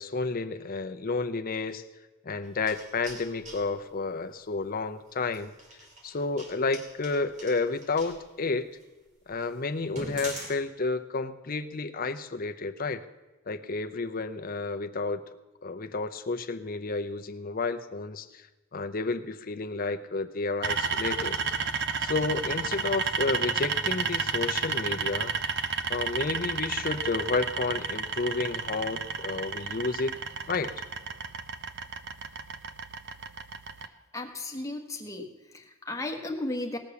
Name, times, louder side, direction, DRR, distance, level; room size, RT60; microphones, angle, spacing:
voice 1, 0.0-1.8 2.2-5.5 6.0-8.7 9.3-13.0 13.5-15.2 15.6-18.5 18.7-21.4 22.0-25.3 25.9-30.2 30.5-30.7, left 3 dB, 45° left, 9 dB, 0.7 m, -31 dB
sound 1, 2.4-3.6 5.2-8.2 8.7-8.8 9.3-9.4 9.8-10.5, right 1 dB, 35° right, 3.0 m, -42 dB
sound 2, 20.6-33.9, right 5 dB, 55° right, 0.7 m, -32 dB
voice 2, 34.1-36.8, left 2 dB, 15° left, 2 dB, 1.4 m, -35 dB
18.0 x 6.6 x 7.0 m, 1.1 s
head